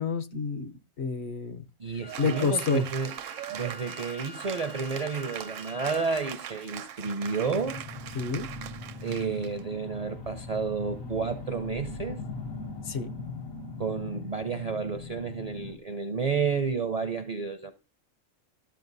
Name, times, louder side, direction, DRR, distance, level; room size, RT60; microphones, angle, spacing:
voice 1, 0.0-1.7 2.2-2.9 8.1-8.5 12.8-13.1, left 5 dB, 60° left, 1.0 m, -29 dB
voice 2, 1.8-3.1 3.5-7.8 9.0-12.2 13.8-17.7, right 5 dB, 45° right, 0.5 m, -31 dB
Wind instrument woodwind instrument, 2.0-6.0, left 4 dB, 30° left, 0.5 m, -48 dB
Cheering / Applause, 2.1-9.6, right 11 dB, 75° right, 1.0 m, -40 dB
sound 1, 7.4-15.8, left 3 dB, 85° left, 1.8 m, -40 dB
12.5 x 7.7 x 2.6 m
omnidirectional pair, 1.3 m